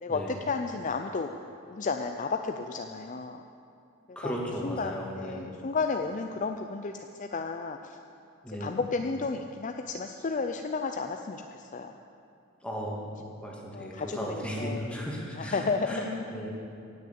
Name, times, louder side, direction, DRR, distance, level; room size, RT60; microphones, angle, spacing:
voice 1, 0.0-1.3 1.7-3.4 4.1-4.3 4.6-8.0 8.5-11.9 13.7-15.1 15.4-16.3, left 4 dB, 35° left, 5 dB, 0.5 m, -33 dB
voice 2, 4.2-5.4 8.4-8.8 12.6-16.5, equal, 5° left, -3 dB, 2.1 m, -36 dB
17.0 x 6.7 x 8.5 m, 2.6 s
head